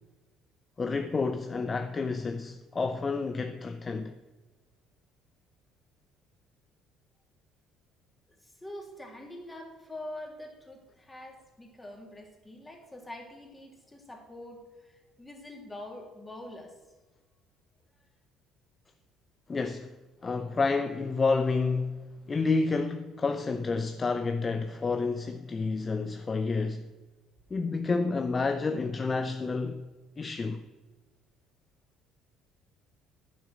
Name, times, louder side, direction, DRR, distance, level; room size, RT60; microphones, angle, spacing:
voice 1, 0.8-4.1 19.5-19.9 20.2-26.9 27.5-29.8 30.2-30.6, left 4 dB, 30° left, 0.7 m, -29 dB
voice 2, 8.4-16.7, left 1 dB, 15° left, 3.0 m, -45 dB
10.5 x 7.4 x 6.1 m
hypercardioid pair, 60°, 0 cm